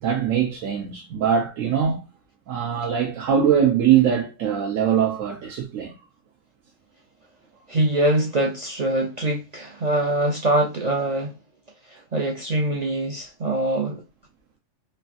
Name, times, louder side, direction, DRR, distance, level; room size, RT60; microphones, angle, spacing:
voice 1, 0.0-2.0 2.5-5.9, right 8 dB, 85° right, 1.0 m, -22 dB
voice 2, 7.7-11.4 11.8-14.0, right 1 dB, 60° right, 0.4 m, -23 dB
3.2 x 2.4 x 2.4 m
omnidirectional pair, 1.3 m